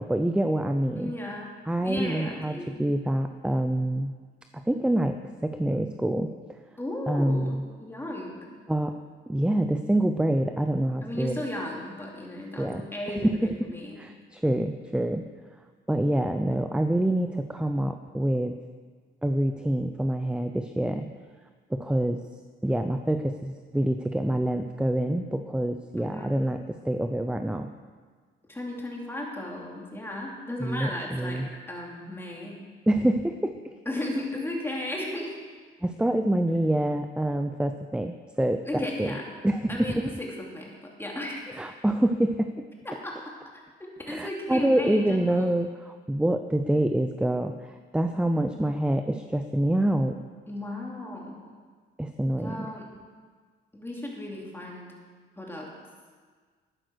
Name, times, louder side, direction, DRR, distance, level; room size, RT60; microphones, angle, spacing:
voice 1, 0.0-1.1 1.7-4.1 4.5-6.6 7.1-7.6 8.7-8.9 9.3-11.4 12.6-12.8 13.2-13.5 14.0-15.2 15.9-18.6 19.2-21.1 21.7-22.2 22.6-27.7 30.6-31.5 32.9-33.7 35.8-38.6 39.0-39.2 39.4-40.1 41.5-42.5 44.1-50.2 52.0-52.7, right 1 dB, 5° right, 7 dB, 0.6 m, -26 dB
voice 2, 1.0-1.5 1.8-2.8 6.8-8.5 11.0-14.0 26.0-26.3 28.5-31.4 31.7-32.6 33.9-35.3 38.7-39.3 39.7-41.6 42.9-43.3 43.8-45.5 50.5-51.5 52.4-52.9 53.7-54.9 55.4-55.7, left 1 dB, 10° left, -2 dB, 3.4 m, -35 dB
12.5 x 9.5 x 6.4 m, 1.6 s
cardioid pair, 90°, 20 cm